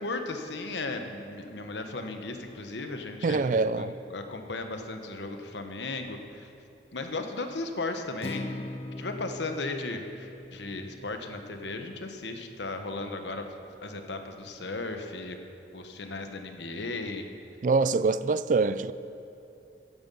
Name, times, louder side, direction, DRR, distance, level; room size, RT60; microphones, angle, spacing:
voice 1, 0.0-6.5 6.9-13.5 13.8-15.4 15.7-17.3, left 2 dB, 90° left, 1.1 m, -36 dB
voice 2, 3.2-3.9 17.6-18.9, right 4 dB, 45° right, 0.3 m, -24 dB
Acoustic guitar, 8.2-12.4, left 1 dB, 35° left, 0.5 m, -42 dB
14.5 x 9.8 x 5.4 m
head